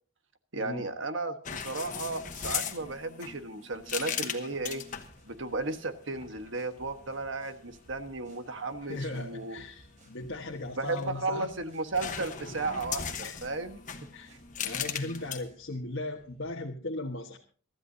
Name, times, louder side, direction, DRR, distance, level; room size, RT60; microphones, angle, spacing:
voice 1, 0.5-4.8 5.3-9.6 10.8-13.8, right 3 dB, 60° right, 8 dB, 1.3 m, -34 dB
sound 1, 1.5-5.2 6.1-6.5 10.7-11.5 11.9-15.4, left 8 dB, 35° left, 1.1 m, -37 dB
sound 2, 4.6-16.6, equal, 35° right, 4.1 m, -59 dB
voice 2, 8.8-11.5 13.2-13.4 14.1-17.4, left 2 dB, 60° left, -2 dB, 1.4 m, -38 dB
23.5 x 13.5 x 2.7 m, 0.41 s
head